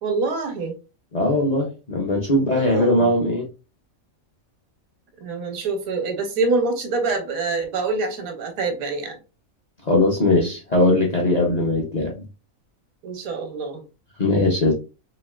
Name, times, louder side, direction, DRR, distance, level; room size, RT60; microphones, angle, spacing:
voice 1, 0.0-0.7 2.2-3.1 5.2-9.2 13.0-13.8, right 3 dB, 85° right, 1.2 m, -26 dB
voice 2, 1.1-3.5 9.8-12.2 14.2-14.7, left 1 dB, 45° left, 0.5 m, -20 dB
3.1 x 2.7 x 2.2 m
omnidirectional pair, 1.5 m